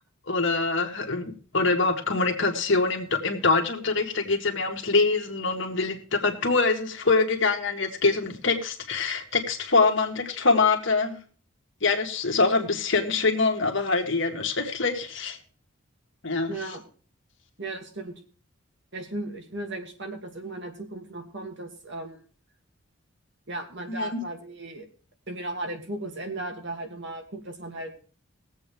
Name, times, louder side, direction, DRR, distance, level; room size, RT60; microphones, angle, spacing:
voice 1, 0.3-11.1 11.8-15.4 16.2-16.5 23.9-24.2, left 3 dB, 60° left, 4 dB, 1.8 m, -24 dB
voice 2, 16.5-16.8 17.6-18.1 18.9-22.2 23.5-24.9 25.3-27.9, right 2 dB, 55° right, 3 dB, 2.5 m, -36 dB
20.5 x 8.0 x 3.5 m, 0.40 s
head